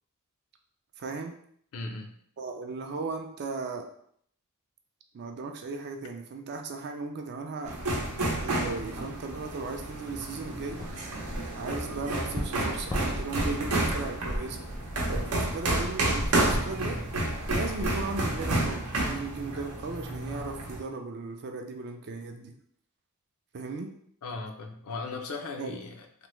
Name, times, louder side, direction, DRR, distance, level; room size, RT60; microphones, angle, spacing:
voice 1, 1.0-1.3 2.4-3.8 5.1-7.7 8.4-10.8 11.5-14.6 15.3-17.0 17.5-22.5 23.5-23.9 25.6-25.8, right 3 dB, 50° right, 4 dB, 0.4 m, -36 dB
voice 2, 1.7-2.2 24.2-26.3, left 3 dB, 70° left, 4 dB, 0.4 m, -38 dB
sound 1, 7.7-20.8, right 1 dB, 85° right, 0.7 m, -31 dB
sound 2, 10.4-18.9, equal, 15° left, 0.5 m, -38 dB
3.2 x 2.0 x 3.0 m, 0.64 s
head